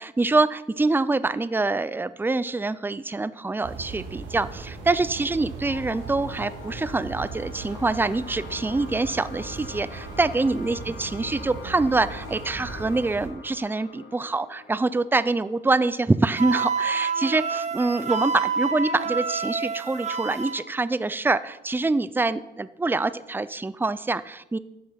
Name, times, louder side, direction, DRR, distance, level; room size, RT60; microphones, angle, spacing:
voice 1, 0.0-24.6, right 3 dB, 10° right, 16 dB, 0.5 m, -25 dB
sound 1, 3.6-13.3, right 4 dB, 85° right, 2.9 m, -38 dB
sound 2, 5.6-16.7, left 4 dB, 75° left, 2.1 m, -44 dB
Wind instrument woodwind instrument, 16.4-20.6, right 5 dB, 35° right, 1.1 m, -28 dB
12.0 x 7.6 x 5.9 m, 0.93 s
cardioid pair, 90°, 20 cm